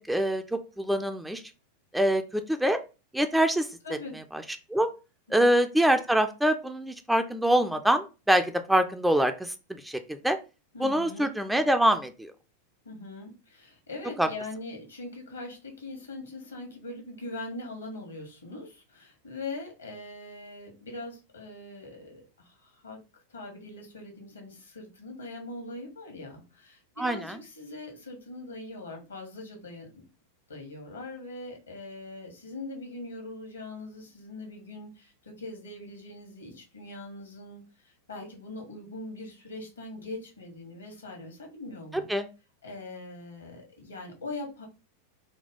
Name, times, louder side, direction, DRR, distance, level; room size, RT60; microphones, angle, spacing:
voice 1, 0.1-1.4 1.9-2.8 3.1-3.7 4.3-4.4 4.7-4.9 5.3-9.5 9.8-10.4 10.8-12.3 14.2-14.3 27.0-27.4 41.9-42.3, right 1 dB, 5° right, 8 dB, 0.3 m, -25 dB
voice 2, 3.8-4.2 5.3-5.6 10.7-11.3 12.8-30.0 30.5-42.1 42.6-44.7, left 2 dB, 75° left, 2 dB, 1.2 m, -42 dB
4.2 x 2.2 x 3.5 m, 0.31 s
figure-of-eight pair, 90°, 0 cm